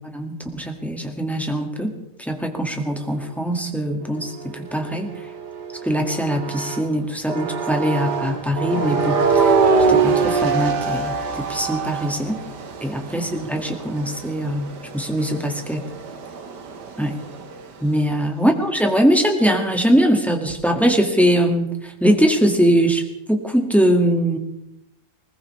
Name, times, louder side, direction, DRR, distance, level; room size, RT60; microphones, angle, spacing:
voice 1, 0.0-1.9 2.2-5.1 5.8-9.5 9.9-12.4 12.8-15.8 17.0-17.2 17.8-23.0 23.3-24.4, equal, ahead, 2 dB, 1.8 m, -21 dB
sound 1, 4.0-6.9 7.3-17.7, right 5 dB, 85° right, 1.9 m, -24 dB
20.5 x 20.0 x 3.3 m, 0.84 s
omnidirectional pair, 1.7 m